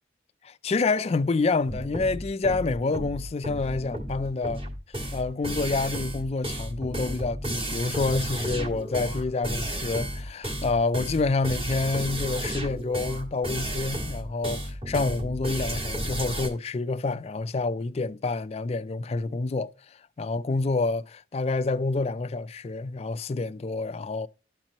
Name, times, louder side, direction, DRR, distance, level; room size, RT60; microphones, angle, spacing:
voice 1, 0.4-4.6 5.1-24.3, left 3 dB, 35° left, 0.4 m, -28 dB
sound 1, 1.7-16.5, right 1 dB, 30° right, 1.6 m, -32 dB
12.0 x 4.4 x 2.8 m
head